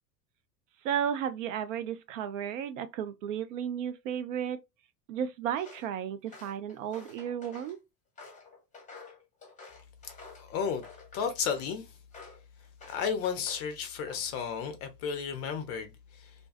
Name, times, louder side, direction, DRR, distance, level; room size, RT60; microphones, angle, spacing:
voice 1, 0.8-4.6 5.1-7.8, right 9 dB, 50° right, 0.5 m, -33 dB
Walk footsteps, 5.5-5.9 6.3-7.8 8.2-10.5 10.8-11.7 12.1-12.4 12.8-13.7 14.0-14.5, left 4 dB, 15° left, 0.9 m, -50 dB
voice 2, 10.4-10.9 11.1-11.9 12.9-16.3, left 7 dB, 30° left, 0.5 m, -33 dB
2.5 x 2.2 x 2.3 m
figure-of-eight pair, 80°, 50 cm